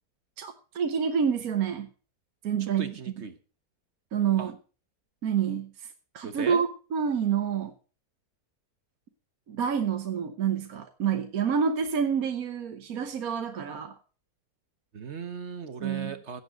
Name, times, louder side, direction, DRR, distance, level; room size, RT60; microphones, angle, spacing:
voice 1, 0.4-1.9 2.4-2.9 4.1-4.5 5.2-5.7 6.1-7.7 9.5-13.9 15.8-16.1, right 7 dB, 65° right, 6 dB, 1.4 m, -28 dB
voice 2, 2.6-3.4 4.4-4.5 6.2-6.6 14.9-16.4, right 5 dB, 45° right, 10 dB, 1.3 m, -37 dB
16.5 x 7.6 x 5.2 m, 0.37 s
omnidirectional pair, 1.7 m